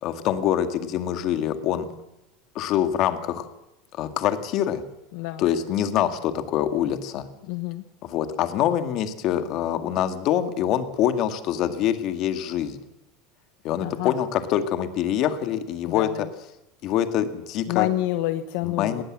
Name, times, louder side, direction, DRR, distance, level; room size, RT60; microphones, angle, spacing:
voice 1, 0.0-1.9 2.6-3.5 4.0-4.8 5.4-7.2 8.0-12.8 13.6-16.3 16.8-17.9 18.6-19.0, left 10 dB, 40° left, 9 dB, 1.9 m, -25 dB
voice 2, 5.1-5.5 7.4-7.8 13.8-14.2 15.9-16.2 17.7-19.0, left 15 dB, 60° left, 10 dB, 1.2 m, -28 dB
19.5 x 19.0 x 7.6 m, 0.91 s
cardioid pair, 170°, 0 cm